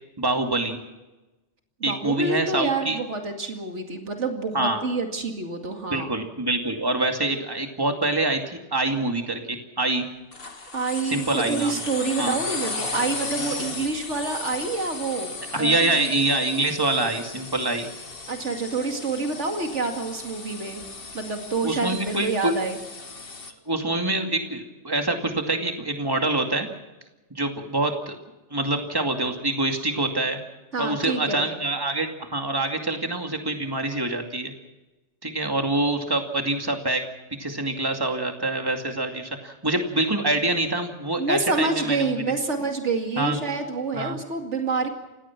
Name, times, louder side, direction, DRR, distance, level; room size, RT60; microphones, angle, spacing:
voice 1, 0.2-0.8 1.8-3.0 4.5-4.8 5.9-10.0 11.0-11.8 12.2-12.3 15.5-17.9 21.6-22.5 23.7-26.7 27.3-28.2 28.5-30.4 30.8-34.5 35.2-37.0 37.3-42.2 43.2-43.4 43.9-44.2, right 2 dB, 20° right, 4 dB, 2.4 m, -25 dB
voice 2, 1.8-6.1 10.7-15.7 18.3-20.8 21.1-22.8 30.7-31.5 41.2-44.9, right 3 dB, 85° right, 4 dB, 2.7 m, -27 dB
sound 1, 10.3-23.5, left 3 dB, 55° left, 2.0 m, -36 dB
30.0 x 16.5 x 6.1 m, 1.1 s
omnidirectional pair, 1.2 m